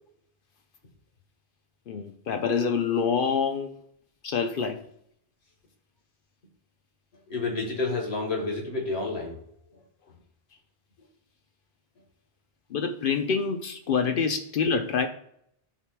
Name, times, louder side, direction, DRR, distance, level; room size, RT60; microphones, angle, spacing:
voice 1, 1.9-3.7 4.2-4.8 12.7-15.1, left 6 dB, 65° left, 0.7 m, -26 dB
voice 2, 7.3-9.4 9.7-9.8, left 3 dB, 85° left, 1.8 m, -30 dB
11.5 x 4.5 x 2.2 m
omnidirectional pair, 1.1 m